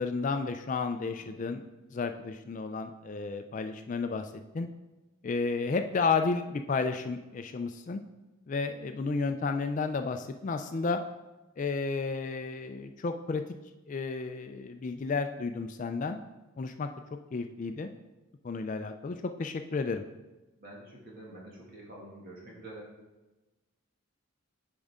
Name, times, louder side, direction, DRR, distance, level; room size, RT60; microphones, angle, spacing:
voice 1, 0.0-1.6 1.9-4.7 5.2-8.0 8.5-11.0 11.6-13.4 13.9-16.2 16.6-16.9 17.3-17.9 18.4-20.0, left 4 dB, 35° left, 7 dB, 0.3 m, -32 dB
voice 2, 1.0-1.3 20.6-22.9, right 1 dB, 45° right, -4 dB, 2.0 m, -47 dB
8.6 x 5.3 x 3.6 m, 1.1 s
head